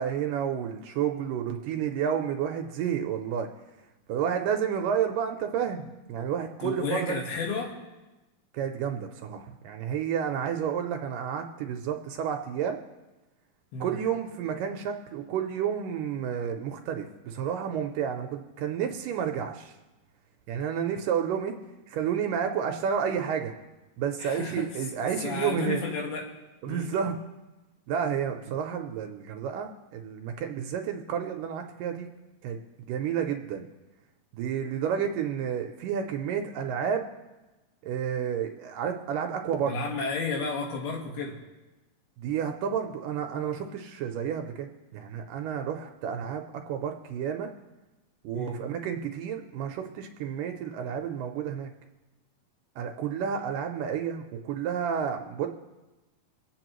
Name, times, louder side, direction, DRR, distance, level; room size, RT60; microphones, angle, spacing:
voice 1, 0.0-3.5 4.1-7.2 8.5-12.8 13.8-19.7 20.5-21.6 21.9-23.6 24.0-25.8 26.6-27.2 27.9-32.1 32.4-33.7 34.3-37.1 37.8-39.7 42.2-47.5 48.2-51.7 52.8-55.5, right 8 dB, 75° right, 4 dB, 2.1 m, -30 dB
voice 2, 6.6-7.7 13.7-13.9 24.2-24.7 25.0-26.3 26.7-26.9 39.6-41.4 48.3-48.6, left 4 dB, 85° left, 0 dB, 3.6 m, -32 dB
25.0 x 8.7 x 3.1 m, 1.1 s
omnidirectional pair, 4.3 m